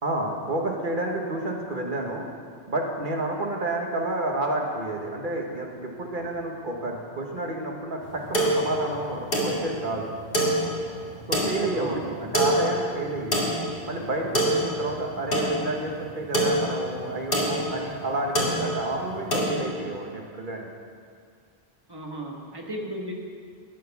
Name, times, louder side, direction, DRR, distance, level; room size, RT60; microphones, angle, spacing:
voice 1, 0.0-2.2 2.7-10.1 11.3-13.5 13.8-20.7, right 1 dB, 55° right, 0 dB, 1.7 m, -30 dB
sound 1, 8.0-19.5, right 1 dB, 60° left, 2.0 m, -27 dB
voice 2, 11.7-12.1 21.9-23.1, right 1 dB, 25° right, 0 dB, 1.4 m, -35 dB
12.5 x 9.4 x 5.9 m, 2.1 s
omnidirectional pair, 1.0 m